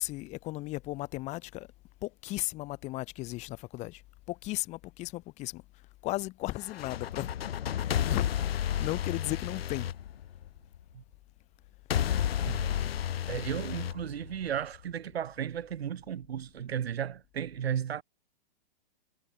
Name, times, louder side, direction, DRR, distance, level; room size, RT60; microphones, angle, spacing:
voice 1, 0.0-1.7 2.0-4.0 4.3-5.6 6.0-7.3 7.8-9.9, left 19 dB, 20° left, 1.2 m, -36 dB
sound 1, 6.6-10.8 11.9-14.8, left 10 dB, 70° left, 1.7 m, -32 dB
voice 2, 12.4-12.8 13.3-18.0, right 9 dB, 80° right, 2.0 m, -34 dB
hypercardioid pair, 155°, 31 cm